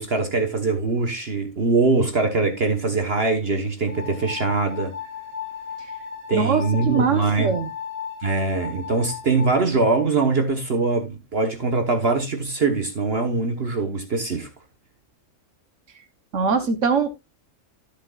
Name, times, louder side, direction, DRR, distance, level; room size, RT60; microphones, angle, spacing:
voice 1, 0.0-5.0 6.3-7.6 8.2-14.5, right 3 dB, 50° right, 1.3 m, -22 dB
sound 1, 3.9-9.5, left 7 dB, 30° left, 5.5 m, -36 dB
voice 2, 6.3-7.7 16.3-17.1, right 5 dB, 70° right, 1.3 m, -22 dB
13.5 x 7.0 x 2.3 m
omnidirectional pair, 1.3 m